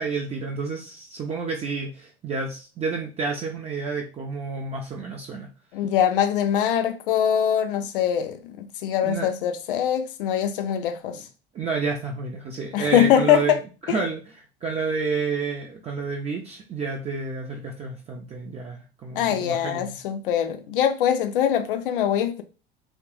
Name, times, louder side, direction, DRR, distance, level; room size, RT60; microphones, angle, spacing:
voice 1, 0.0-5.5 9.0-9.3 11.1-11.2 11.5-13.6 13.9-19.9, right 4 dB, 20° right, 0.4 m, -30 dB
voice 2, 5.7-11.2 12.7-13.6 19.2-22.4, left 9 dB, 60° left, 0.5 m, -23 dB
3.2 x 2.1 x 2.9 m
figure-of-eight pair, 70°, 30 cm